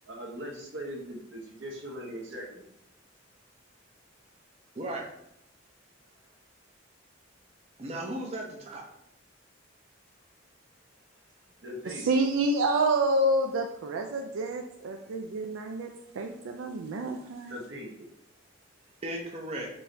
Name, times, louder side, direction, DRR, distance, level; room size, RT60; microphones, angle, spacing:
voice 1, 0.1-2.6 11.6-12.1 17.5-18.1, equal, 65° right, 0 dB, 1.0 m, -40 dB
voice 2, 7.8-8.8 19.0-19.7, right 1 dB, 30° right, 0 dB, 0.5 m, -35 dB
voice 3, 11.8-17.6, right 2 dB, 85° right, 4 dB, 0.4 m, -28 dB
4.6 x 2.7 x 3.2 m, 0.76 s
head